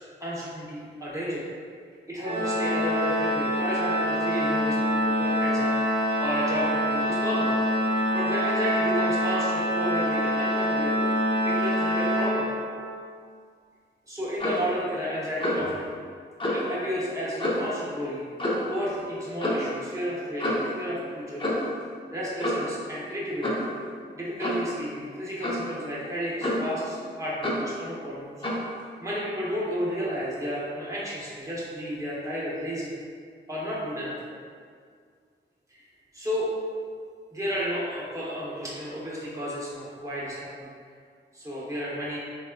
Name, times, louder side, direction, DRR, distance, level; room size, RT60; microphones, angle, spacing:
voice 1, 0.2-1.4 2.1-5.8 6.2-7.5 8.1-11.0 11.4-12.5 14.1-15.8 16.5-18.3 18.7-21.4 22.1-23.7 24.1-28.3 29.0-32.9 33.5-34.2 35.7-35.8 36.1-36.5 37.3-40.7 41.3-42.2, equal, 15° right, -7 dB, 0.9 m, -32 dB
Organ, 2.2-13.0, equal, 65° right, 0.8 m, -25 dB
Clock, 14.4-14.7 15.4-15.7 16.4-16.6 17.4-17.7 18.4-18.7 19.4-19.7 20.4-20.7 21.4-21.7 22.4-22.7 23.4-23.7 24.4-24.7 25.4-25.7 26.4-26.8 27.4-27.7 28.4-28.7, left 1 dB, 25° left, 0.7 m, -28 dB
3.4 x 2.3 x 2.2 m, 2.1 s
cardioid pair, 65°, 19 cm